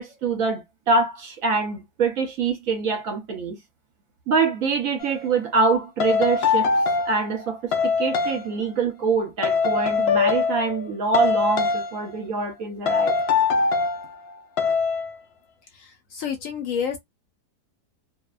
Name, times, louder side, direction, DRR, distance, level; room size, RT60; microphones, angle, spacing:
voice 1, 0.0-3.6 4.3-6.7 7.1-13.1, right 4 dB, 65° right, 1.0 m, -24 dB
sound 1, 5.0-5.2 6.0-7.3 7.7-8.4 9.4-10.9 11.1-12.0 12.9-14.0 14.6-15.2, left 5 dB, 80° left, 0.5 m, -22 dB
voice 2, 15.8-17.0, left 7 dB, 65° left, 0.9 m, -29 dB
2.7 x 2.1 x 2.2 m
omnidirectional pair, 1.8 m